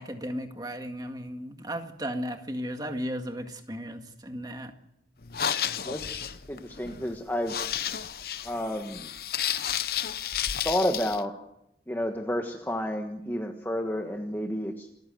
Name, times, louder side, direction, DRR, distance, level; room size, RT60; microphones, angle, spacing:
voice 1, 0.0-4.7, equal, 20° right, 6 dB, 1.9 m, -35 dB
sound 1, 5.2-11.2, left 9 dB, 55° left, 0.9 m, -32 dB
voice 2, 5.8-7.6 8.4-9.1 10.6-11.3 11.9-15.0, equal, 10° left, 3 dB, 1.4 m, -31 dB
27.5 x 14.5 x 7.9 m, 0.80 s
head